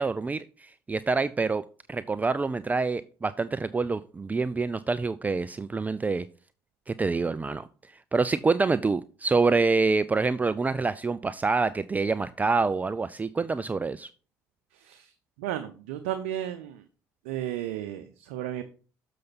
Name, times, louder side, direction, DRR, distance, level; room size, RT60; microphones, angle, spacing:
voice 1, 0.0-6.3 6.9-7.7 8.1-14.1, right 4 dB, 20° right, 0.4 m, -26 dB
voice 2, 14.7-15.1 15.4-16.8 17.2-18.6, right 12 dB, 90° right, 0.6 m, -33 dB
6.8 x 6.6 x 4.1 m
supercardioid pair, 65°, 7 cm